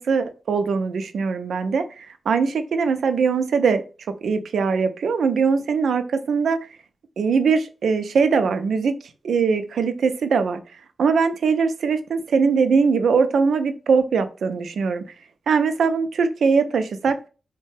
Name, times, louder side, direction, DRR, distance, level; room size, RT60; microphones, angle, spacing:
voice 1, 0.0-3.8 4.2-6.6 7.2-8.9 9.2-10.6 11.0-15.0 15.5-17.1, right 5 dB, 85° right, 0.5 m, -21 dB
3.9 x 2.2 x 3.2 m
wide cardioid pair, 175°, 0 cm